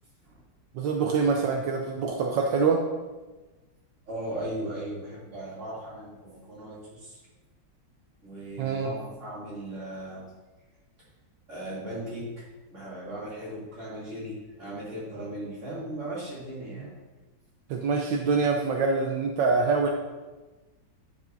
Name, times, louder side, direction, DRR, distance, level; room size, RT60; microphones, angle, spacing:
voice 1, 0.7-2.8 8.6-8.9 17.7-19.9, right 4 dB, 80° right, 2 dB, 1.4 m, -25 dB
voice 2, 4.0-7.2 8.2-10.2 11.5-16.9, right 1 dB, 40° right, -8 dB, 3.1 m, -37 dB
9.5 x 8.2 x 2.7 m, 1.2 s
omnidirectional pair, 2.0 m